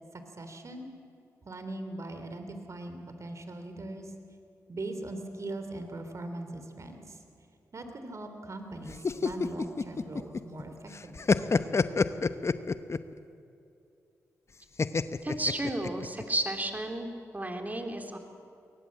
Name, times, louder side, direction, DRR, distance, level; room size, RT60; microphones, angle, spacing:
voice 1, 0.1-0.9 1.5-4.1 4.7-7.2 7.7-11.3, right 2 dB, 50° right, 7 dB, 3.4 m, -40 dB
sound 1, 8.9-10.6 10.9-13.1 14.8-16.2, left 4 dB, 45° left, 0.9 m, -27 dB
voice 2, 15.2-17.1 17.3-18.2, right 1 dB, 25° right, 4 dB, 3.2 m, -32 dB
23.0 x 19.0 x 7.5 m, 2.6 s
supercardioid pair, 40°, 7 cm